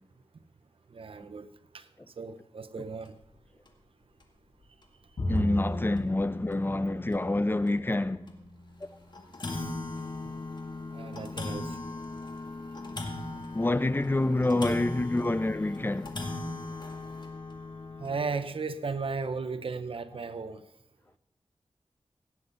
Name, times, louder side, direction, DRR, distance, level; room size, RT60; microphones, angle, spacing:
voice 1, 0.9-1.5 1.7-1.9 2.2-3.2 9.5-9.6 10.2-10.3 10.9-11.7 18.0-20.6, right 4 dB, 70° right, 0.8 m, -35 dB
sound 1, 3.1-3.2 3.7-3.8 4.2-4.3 5.4-5.5 6.0-6.1 6.5-6.6 7.1-7.2 8.3-8.5 8.8-8.9 9.1-18.3, left 2 dB, 50° left, 2.0 m, -38 dB
Bowed string instrument, 5.2-8.6, equal, 80° left, 4.8 m, -35 dB
voice 2, 5.3-8.2 8.8-8.9 13.5-16.1, left 2 dB, 20° left, 0.6 m, -27 dB
17.0 x 9.7 x 4.0 m
cardioid pair, 55°, 10 cm